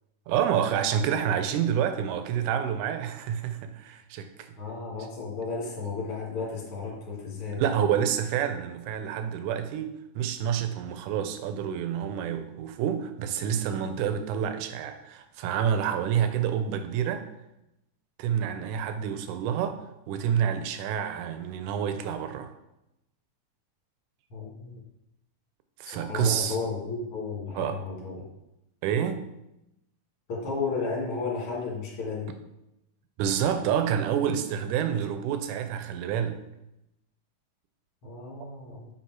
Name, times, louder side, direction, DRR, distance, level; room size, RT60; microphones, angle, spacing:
voice 1, 0.3-4.5 7.5-17.3 18.2-19.8 20.1-22.5 25.8-26.6 27.5-27.8 28.8-29.3 33.2-36.4, right 8 dB, 80° right, 8 dB, 1.9 m, -28 dB
voice 2, 4.6-7.6 24.3-24.7 25.8-28.2 30.3-32.3 38.0-38.9, left 4 dB, 50° left, -3 dB, 2.5 m, -33 dB
7.2 x 3.6 x 4.6 m, 0.88 s
omnidirectional pair, 3.8 m